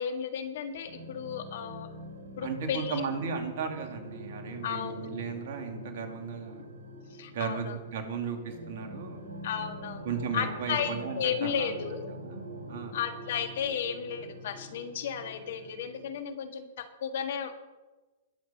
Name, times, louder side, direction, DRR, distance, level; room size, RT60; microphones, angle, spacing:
voice 1, 0.0-1.9 2.4-3.0 4.6-5.1 7.1-7.8 9.4-10.1 10.3-12.1 12.9-17.6, left 8 dB, 65° left, 8 dB, 1.6 m, -34 dB
sound 1, 0.8-16.1, right 1 dB, 80° right, 4.0 m, -45 dB
voice 2, 2.4-6.7 7.3-9.2 10.0-11.8 12.2-12.4 12.7-13.0, right 6 dB, 60° right, 4 dB, 2.8 m, -35 dB
21.0 x 7.3 x 5.9 m, 1.2 s
hypercardioid pair, 115°, 0 cm